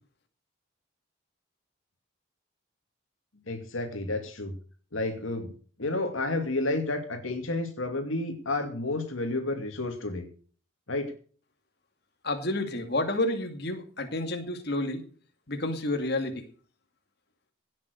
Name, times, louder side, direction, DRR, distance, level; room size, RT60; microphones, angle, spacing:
voice 1, 3.5-4.5 4.9-5.5 5.8-10.3 10.9-11.1, left 2 dB, 85° left, 6 dB, 2.6 m, -31 dB
voice 2, 12.2-15.0 15.5-16.5, left 1 dB, 50° left, 6 dB, 2.4 m, -30 dB
17.5 x 7.5 x 6.6 m, 0.42 s
head